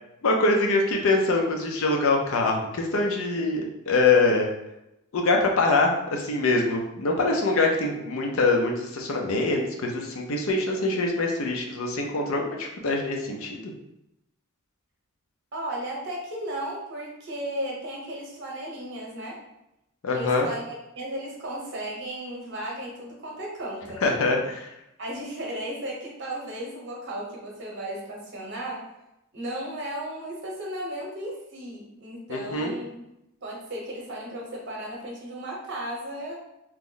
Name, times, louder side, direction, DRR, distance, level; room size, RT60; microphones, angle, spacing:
voice 1, 0.2-4.5 5.1-13.7 20.0-20.5 24.0-24.7 32.3-32.7, left 3 dB, 70° left, 1 dB, 0.5 m, -24 dB
voice 2, 15.5-19.4 20.1-24.0 25.0-28.9 29.3-33.0 33.4-36.4, right 1 dB, 55° right, -2 dB, 0.9 m, -35 dB
2.9 x 2.0 x 3.7 m, 0.88 s
head